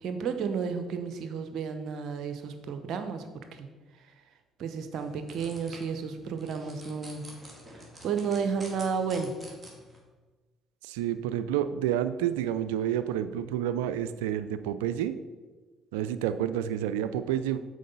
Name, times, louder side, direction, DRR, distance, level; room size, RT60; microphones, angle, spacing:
voice 1, 0.0-3.2 3.5-3.7 4.6-7.2 8.0-9.3, right 6 dB, 65° right, 8 dB, 0.8 m, -32 dB
sound 1, 4.9-10.0, right 1 dB, 15° right, 2.4 m, -49 dB
voice 2, 10.8-15.1 15.9-17.6, right 10 dB, 85° right, 12 dB, 0.3 m, -29 dB
6.5 x 4.6 x 5.4 m, 1.3 s
hypercardioid pair, 55°, 0 cm